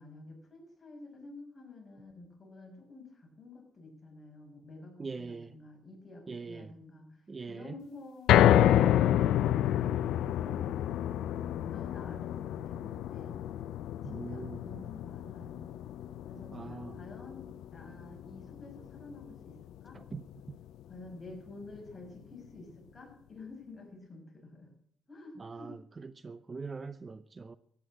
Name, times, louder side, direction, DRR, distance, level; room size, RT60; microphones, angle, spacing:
voice 1, 0.0-7.2 7.5-9.1 9.5-10.7 11.6-13.4 14.0-15.7 16.2-20.0 20.9-24.7 25.1-25.7, left 2 dB, 30° left, 6.6 m, -50 dB
voice 2, 5.0-5.6 6.3-6.7 7.3-7.7 14.0-14.6 16.5-17.0 19.9-20.2 25.4-27.6, right 4 dB, 30° right, 0.7 m, -42 dB
sound 1, 8.3-20.5 20.9-21.0 21.5-21.6, left 12 dB, 85° left, 0.6 m, -29 dB
14.5 x 9.5 x 8.6 m
cardioid pair, 90°, 0 cm